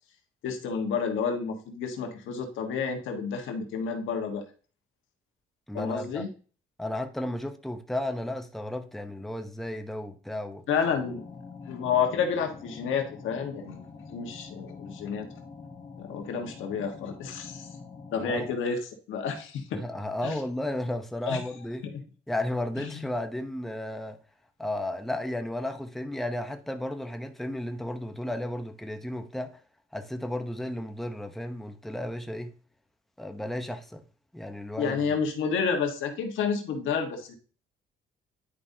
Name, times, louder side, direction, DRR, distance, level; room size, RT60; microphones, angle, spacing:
voice 1, 0.4-4.4 5.7-6.3 10.7-11.2 11.7-15.3 16.0-17.7 18.1-18.8 19.1-19.8 20.2-20.4 21.2-21.4 21.8-21.9 22.8-23.0 34.8-37.3, left 6 dB, 80° left, 1.5 m, -30 dB
voice 2, 5.7-6.2 6.8-10.6 18.2-18.5 19.7-21.9 22.3-24.2 24.6-29.6 29.9-32.5 33.2-34.0 34.3-35.0, left 1 dB, ahead, 0.8 m, -33 dB
sound 1, 10.8-18.6, left 4 dB, 30° left, 1.7 m, -45 dB
10.0 x 5.2 x 2.8 m
cardioid pair, 90°, 20 cm